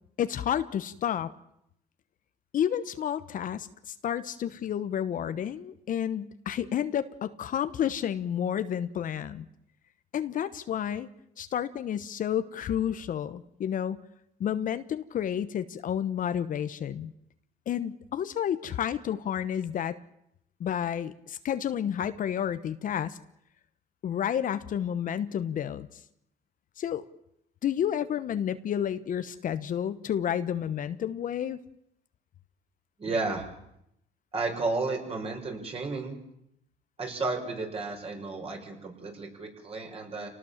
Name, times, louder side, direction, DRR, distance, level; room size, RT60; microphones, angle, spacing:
voice 1, 0.2-1.3 2.5-9.4 10.1-11.1 11.4-14.0 14.4-17.1 17.7-20.0 20.6-23.2 24.0-25.9 26.8-27.0 27.6-31.6, left 9 dB, 50° left, 12 dB, 1.1 m, -30 dB
voice 2, 33.0-33.5 34.3-36.2 37.0-40.3, right 3 dB, 35° right, 2 dB, 6.2 m, -32 dB
28.0 x 19.0 x 7.3 m, 0.77 s
cardioid pair, 110°, 17 cm